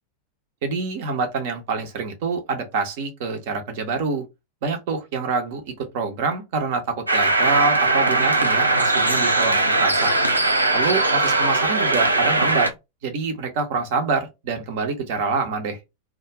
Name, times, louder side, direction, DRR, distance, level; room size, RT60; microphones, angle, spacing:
voice 1, 0.6-4.2 4.6-10.1 10.7-12.7 13.0-15.8, right 4 dB, 50° right, 0.8 m, -26 dB
sound 1, 7.1-12.7, right 2 dB, 80° right, 0.4 m, -20 dB
2.4 x 2.3 x 2.9 m
figure-of-eight pair, 90°, 0 cm